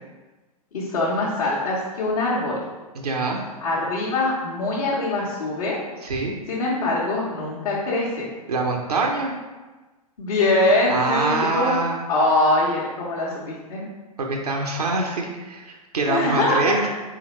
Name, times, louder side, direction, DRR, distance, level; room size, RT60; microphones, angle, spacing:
voice 1, 0.7-2.6 3.6-5.8 6.5-8.3 10.2-11.8 12.1-13.8 16.1-16.9, left 2 dB, 70° left, -7 dB, 1.0 m, -23 dB
voice 2, 2.9-3.5 6.0-6.4 8.5-9.4 10.9-12.0 14.2-16.9, right 3 dB, 85° right, 0 dB, 0.6 m, -24 dB
3.8 x 3.3 x 3.0 m, 1.2 s
hypercardioid pair, 110°, 19 cm